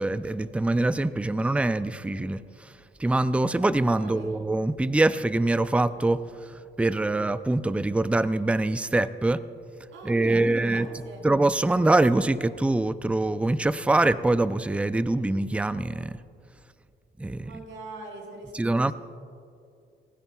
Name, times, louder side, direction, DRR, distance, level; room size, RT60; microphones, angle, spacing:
voice 1, 0.0-2.4 3.0-6.2 6.8-9.4 10.0-10.9 11.2-16.2 17.2-17.5 18.5-18.9, right 2 dB, 5° right, 13 dB, 0.4 m, -24 dB
voice 2, 4.0-4.4 9.9-11.3 17.4-18.9, right 2 dB, 80° right, 0 dB, 4.2 m, -42 dB
29.5 x 16.0 x 2.4 m, 2.5 s
cardioid pair, 90°, 20 cm